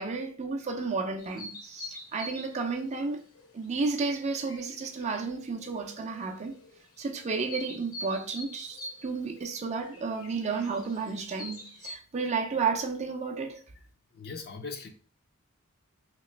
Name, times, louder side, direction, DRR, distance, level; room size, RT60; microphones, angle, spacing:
voice 1, 0.0-3.2 3.5-6.6 7.0-13.6, right 4 dB, 35° right, 0.4 m, -32 dB
sound 1, 1.2-11.9, left 2 dB, 70° left, 0.9 m, -46 dB
voice 2, 14.1-14.9, left 4 dB, 50° left, 0.5 m, -40 dB
3.1 x 2.9 x 3.2 m
head